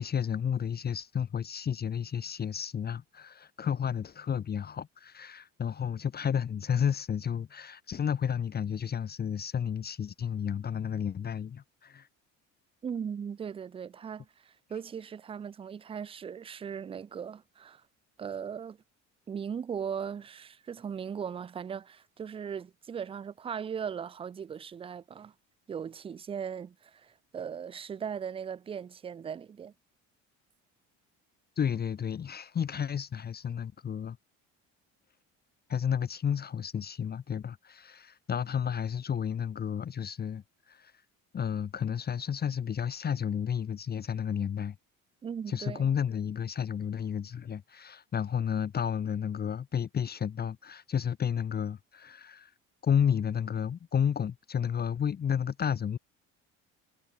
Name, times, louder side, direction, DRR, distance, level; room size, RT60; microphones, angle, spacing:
voice 1, 0.0-12.1 31.6-34.2 35.7-40.9 41.3-44.8 45.5-52.5 52.8-56.0, left 8 dB, 30° left, 1.0 m, -32 dB
voice 2, 12.8-17.8 18.2-18.8 19.3-25.3 25.7-29.7 45.2-45.9, right 7 dB, 20° right, 0.4 m, -38 dB
cardioid pair, 125°, 32 cm